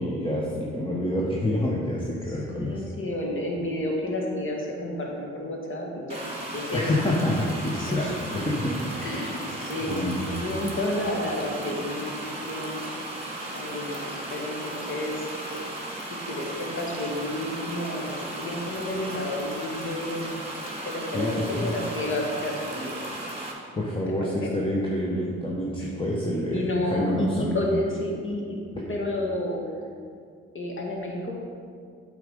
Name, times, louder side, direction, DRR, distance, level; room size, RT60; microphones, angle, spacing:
voice 1, 0.0-2.8 6.7-9.1 9.9-10.3 21.1-21.7 23.7-27.5, left 1 dB, 15° left, -4 dB, 1.3 m, -27 dB
voice 2, 2.3-6.3 6.5-6.8 7.7-8.1 9.0-13.0 13.5-15.7 16.3-20.4 20.8-23.0 24.2-24.5 25.8-25.9 26.5-28.6 28.9-29.6 30.5-31.3, left 1 dB, 40° left, -1 dB, 2.1 m, -31 dB
sound 1, 6.1-23.5, right 1 dB, 20° right, 2.2 m, -36 dB
7.9 x 5.1 x 5.3 m, 2.2 s
supercardioid pair, 50°, 31 cm